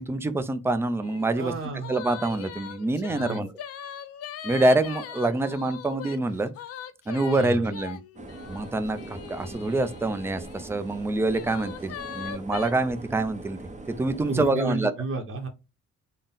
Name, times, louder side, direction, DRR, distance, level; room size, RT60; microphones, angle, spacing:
voice 1, 0.0-1.5 1.9-3.5 4.4-6.5 7.1-8.0 8.5-13.6 14.0-14.9, right 2 dB, 10° right, 0.3 m, -26 dB
sound 1, 1.0-1.3 1.6-10.7 11.3-12.7, left 9 dB, 55° left, 0.5 m, -40 dB
voice 2, 1.4-2.0 3.1-3.4 7.4-7.7 14.3-15.5, right 2 dB, 45° right, 1.0 m, -32 dB
sound 2, 8.1-14.4, right 2 dB, 25° right, 0.7 m, -42 dB
3.8 x 2.1 x 3.7 m
cardioid pair, 135°, 30 cm